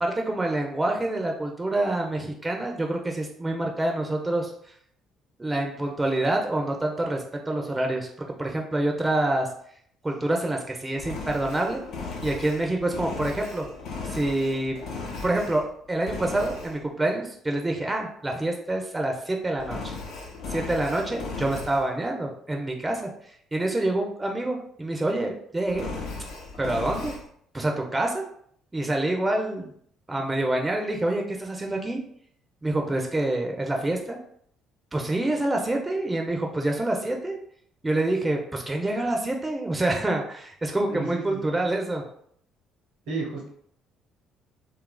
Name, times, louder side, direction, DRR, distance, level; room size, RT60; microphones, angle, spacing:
voice 1, 0.0-4.5 5.4-8.1 8.4-9.5 10.0-11.8 12.2-13.7 14.1-14.8 15.2-15.6 15.9-19.9 20.5-25.9 26.6-27.1 27.5-28.3 28.7-29.7 30.1-32.0 32.6-34.2 34.9-37.4 37.8-42.0, right 1 dB, 20° right, 1 dB, 0.5 m, -27 dB
Engine, 11.0-15.7 16.0-16.8 19.6-21.9 25.7-27.2, left 3 dB, 65° left, 0.5 m, -36 dB
voice 2, 40.9-41.6 43.1-43.5, right 3 dB, 80° right, -2 dB, 0.9 m, -33 dB
2.9 x 2.4 x 2.2 m, 0.64 s
hypercardioid pair, 60°, 0 cm